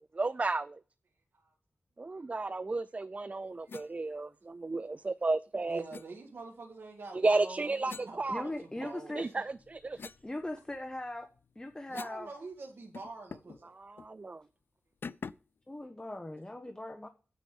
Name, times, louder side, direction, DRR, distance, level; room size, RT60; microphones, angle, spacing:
voice 1, 0.1-0.8 2.0-5.8 7.2-8.4 9.2-10.0 13.7-14.4, right 3 dB, 35° right, 0.4 m, -33 dB
voice 2, 3.3-3.7 4.0-4.3 5.7-9.3 11.9-13.7, right 3 dB, 70° right, 1.9 m, -46 dB
sound 1, 3.7-3.9 5.9-6.1 7.9-8.9 9.4-12.3 12.5-12.6 12.9-13.6 14.0-14.1 15.0-15.6, left 5 dB, 70° left, 0.4 m, -47 dB
voice 3, 8.3-9.4 10.2-11.3 11.6-12.3 15.7-17.1, left 1 dB, 20° left, 1.1 m, -40 dB
9.2 x 5.1 x 6.8 m
wide cardioid pair, 65°, 4 cm